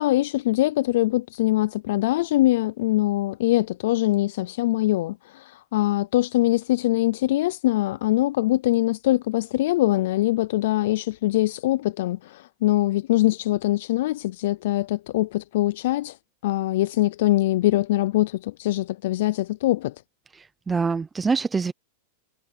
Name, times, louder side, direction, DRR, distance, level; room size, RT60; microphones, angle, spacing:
voice 1, 0.0-16.2 16.4-19.9, left 16 dB, 60° left, 0.3 m, -23 dB
voice 2, 20.3-21.7, right 4 dB, 10° right, 0.5 m, -25 dB
supercardioid pair, 170°, 0 cm